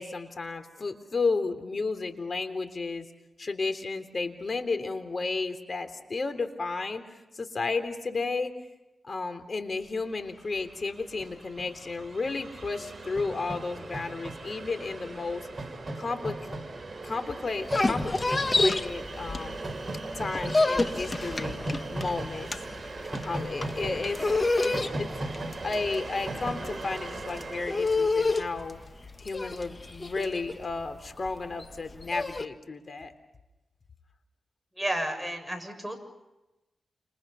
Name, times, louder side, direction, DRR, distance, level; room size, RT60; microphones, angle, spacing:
voice 1, 0.0-3.1 3.4-8.5 9.0-15.4 16.0-16.4 17.0-19.6 20.1-21.6 21.9-22.5 23.2-24.2 24.6-25.1 25.6-28.8 29.2-33.1, left 3 dB, 50° left, 9 dB, 3.5 m, -33 dB
Train, 10.2-10.3 10.5-28.9, right 2 dB, 35° right, 5.7 m, -38 dB
sound 1, 17.5-19.8 20.1-32.4, left 3 dB, 35° left, 1.5 m, -29 dB
voice 2, 34.8-36.0, right 1 dB, ahead, 6 dB, 7.4 m, -31 dB
29.5 x 28.0 x 5.7 m, 1.0 s
cardioid pair, 60°, 0 cm